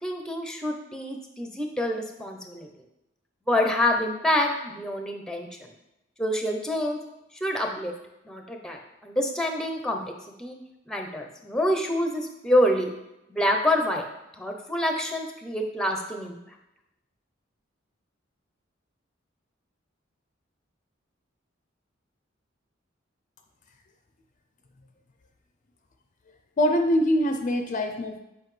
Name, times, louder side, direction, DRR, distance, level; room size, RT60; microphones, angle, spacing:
voice 1, 0.0-2.7 3.5-5.7 6.2-7.0 7.3-7.9 8.3-10.0 10.4-10.6 10.9-12.9 13.3-14.0 14.4-16.4, left 1 dB, 5° left, 3 dB, 0.7 m, -27 dB
voice 2, 26.6-28.2, equal, 40° left, 5 dB, 0.5 m, -23 dB
8.0 x 4.9 x 3.2 m, 0.91 s
head